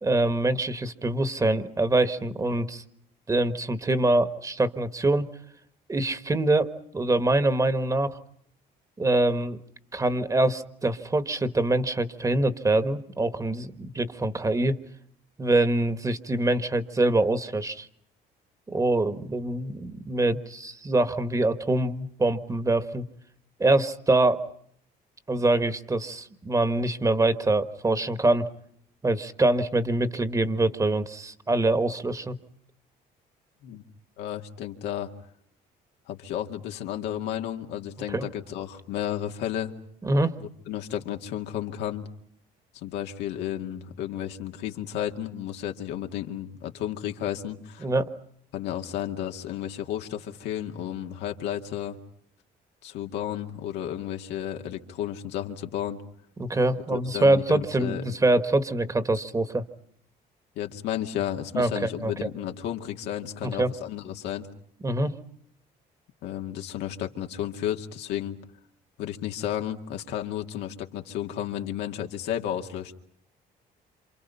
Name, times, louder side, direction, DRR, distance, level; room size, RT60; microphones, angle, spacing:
voice 1, 0.0-2.8 3.3-5.3 5.9-8.2 9.0-9.6 9.9-14.8 15.4-17.9 18.7-23.0 23.6-24.4 25.3-28.5 29.0-32.4 38.1-38.3 40.0-40.3 47.8-48.1 56.4-59.6 61.6-62.1 63.4-63.7 64.8-65.2, right 2 dB, 20° right, 11 dB, 1.5 m, -24 dB
voice 2, 34.2-35.1 36.1-39.7 40.4-42.0 42.8-47.9 48.5-52.0 52.8-56.0 56.9-58.1 60.6-64.5 66.2-68.4 69.0-72.9, left 11 dB, 90° left, 3 dB, 2.1 m, -32 dB
28.0 x 27.5 x 5.6 m, 0.66 s
cardioid pair, 110°, 17 cm